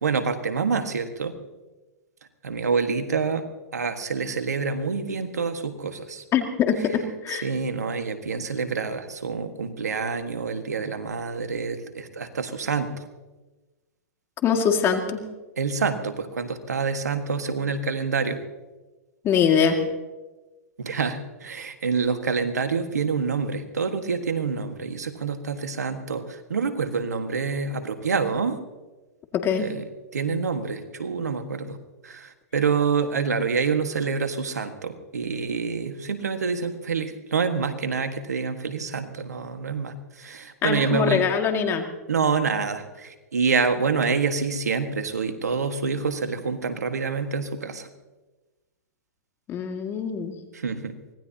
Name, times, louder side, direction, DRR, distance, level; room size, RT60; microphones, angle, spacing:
voice 1, 0.0-1.3 2.4-3.4 3.7-6.2 7.3-12.9 15.6-18.4 20.8-28.6 29.6-31.8 32.0-41.3 42.1-47.9 50.5-50.9, right 5 dB, 85° right, 7 dB, 1.6 m, -27 dB
voice 2, 6.3-7.5 14.4-15.2 19.2-19.8 29.3-29.7 40.6-41.8 49.5-50.3, left 7 dB, 30° left, 5 dB, 2.1 m, -23 dB
24.5 x 18.5 x 2.9 m, 1.2 s
hypercardioid pair, 120°, 9 cm